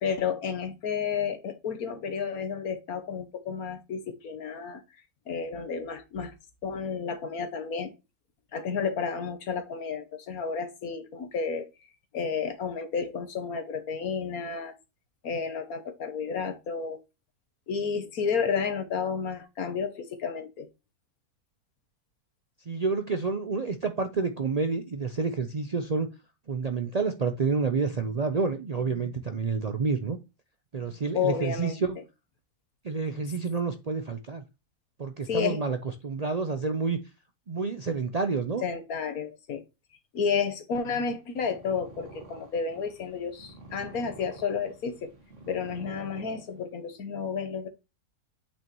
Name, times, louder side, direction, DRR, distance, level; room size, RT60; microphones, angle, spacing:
voice 1, 0.0-4.8 5.3-6.3 6.6-7.9 8.5-11.7 12.1-14.7 15.2-17.0 17.7-20.7 31.1-31.8 35.3-35.6 38.6-39.6 40.1-45.1 45.5-47.7, left 6 dB, 70° left, 1.5 m, -31 dB
voice 2, 22.7-26.1 26.5-30.2 30.7-32.0 32.8-34.4 35.0-35.8 36.0-37.0 37.5-38.6, right 4 dB, 70° right, 0.3 m, -29 dB
Purr, 41.2-46.9, right 2 dB, 50° right, 2.0 m, -49 dB
8.4 x 6.0 x 3.0 m
omnidirectional pair, 1.6 m